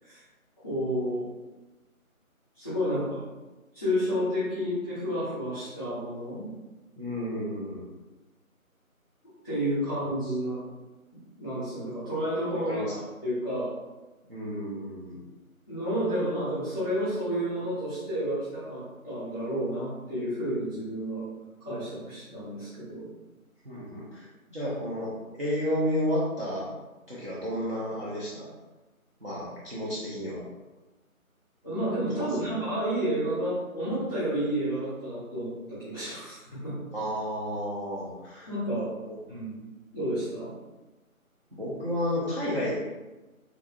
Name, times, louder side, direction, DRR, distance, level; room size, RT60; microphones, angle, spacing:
voice 1, 0.6-1.2 2.5-3.2 3.7-6.5 9.4-10.6 11.4-13.7 15.7-21.2 21.6-23.1 31.6-36.7 38.5-38.9 39.3-39.5 39.9-40.5, equal, 5° right, -19 dB, 1.5 m, -30 dB
voice 2, 7.0-7.8 12.7-12.9 14.3-15.2 23.6-25.1 25.4-26.7 27.1-28.5 29.2-30.4 32.2-32.6 36.9-38.5 39.1-39.2 41.5-42.7, equal, 45° right, -9 dB, 0.7 m, -31 dB
3.6 x 3.0 x 2.3 m, 1.1 s
figure-of-eight pair, 175°, 42 cm